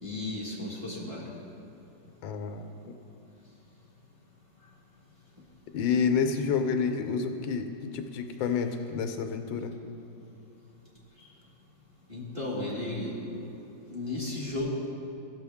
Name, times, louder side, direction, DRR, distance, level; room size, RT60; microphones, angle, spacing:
voice 1, 0.0-1.2 12.1-13.1 13.9-14.7, left 2 dB, 20° right, -5 dB, 1.3 m, -34 dB
voice 2, 2.2-2.7 5.7-7.7 7.9-9.7, left 6 dB, 85° left, 6 dB, 1.4 m, -28 dB
14.0 x 6.2 x 3.5 m, 2.7 s
omnidirectional pair, 2.1 m